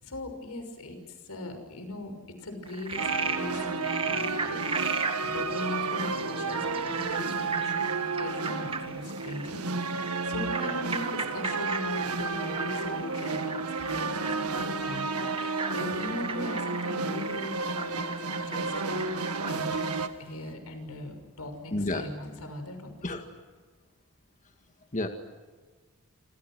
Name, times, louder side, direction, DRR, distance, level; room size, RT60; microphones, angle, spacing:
voice 1, 0.0-4.6 4.9-9.6 9.9-19.1 19.5-19.9 20.2-22.9, left 1 dB, 85° left, 6 dB, 6.1 m, -39 dB
Frog, 2.6-20.1, right 4 dB, 25° right, 2.1 m, -37 dB
sound 1, 3.0-20.1, right 4 dB, 85° right, 1.7 m, -32 dB
voice 2, 21.7-22.1 23.0-23.3 24.9-25.1, left 2 dB, 35° left, 5 dB, 1.8 m, -30 dB
28.0 x 26.5 x 6.2 m, 1.4 s
head